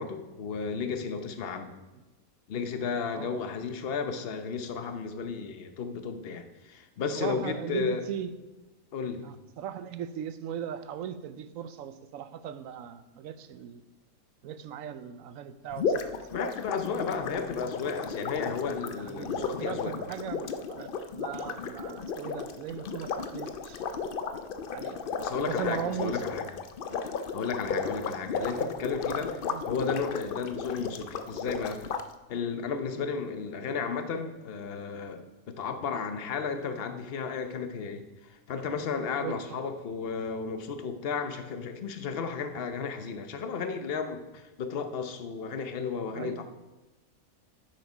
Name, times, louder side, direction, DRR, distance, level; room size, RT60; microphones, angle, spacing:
voice 1, 0.0-1.7 2.5-8.0 8.9-9.3 16.3-19.9 25.2-26.5 27.3-31.9 32.3-46.4, left 5 dB, 50° left, 8 dB, 0.9 m, -33 dB
voice 2, 7.1-8.3 9.2-13.8 14.4-16.5 17.3-17.4 18.9-23.8 24.7-25.0 25.4-26.4 27.7-27.9 29.4-29.6 33.0-33.1 39.2-39.6 46.1-46.4, right 9 dB, 70° right, 12 dB, 1.0 m, -38 dB
sound 1, 15.7-32.0, left 5 dB, 65° left, 0.5 m, -34 dB
9.3 x 7.6 x 5.4 m, 1.1 s
omnidirectional pair, 1.6 m